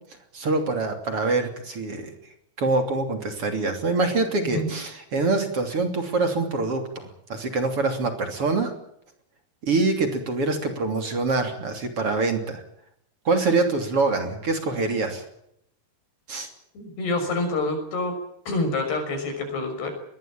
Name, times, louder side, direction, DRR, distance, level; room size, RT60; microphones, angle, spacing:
voice 1, 0.3-2.1 2.6-8.7 9.6-12.6 13.3-15.2 16.3-16.5, right 3 dB, 35° right, 6 dB, 3.5 m, -25 dB
voice 2, 4.4-4.8 16.7-18.1 18.5-19.9, left 2 dB, 80° left, 6 dB, 8.2 m, -27 dB
22.5 x 20.0 x 8.9 m, 0.75 s
omnidirectional pair, 4.7 m